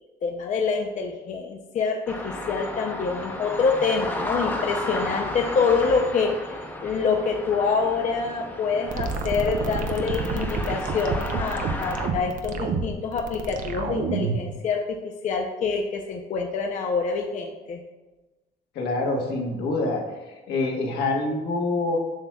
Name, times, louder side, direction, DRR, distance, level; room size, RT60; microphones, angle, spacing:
voice 1, 0.2-15.0 15.2-17.8, left 5 dB, 45° left, 2 dB, 0.6 m, -26 dB
sound 1, 2.1-12.1, left 1 dB, 10° left, 0.8 m, -33 dB
sound 2, 8.9-14.5, right 5 dB, 50° right, 0.6 m, -28 dB
voice 2, 18.7-20.0 20.5-22.0, left 2 dB, 80° left, 1 dB, 1.3 m, -25 dB
7.8 x 5.9 x 2.3 m, 1.2 s
cardioid pair, 110°, 17 cm